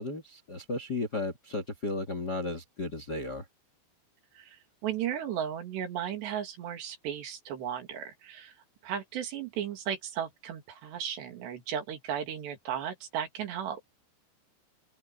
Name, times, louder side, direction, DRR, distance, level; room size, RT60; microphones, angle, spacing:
voice 1, 0.0-3.4, left 2 dB, 35° left, 1.7 m, -34 dB
voice 2, 4.8-8.5 8.8-13.8, right 9 dB, 70° right, 4.5 m, -35 dB
open air
omnidirectional pair, 5.2 m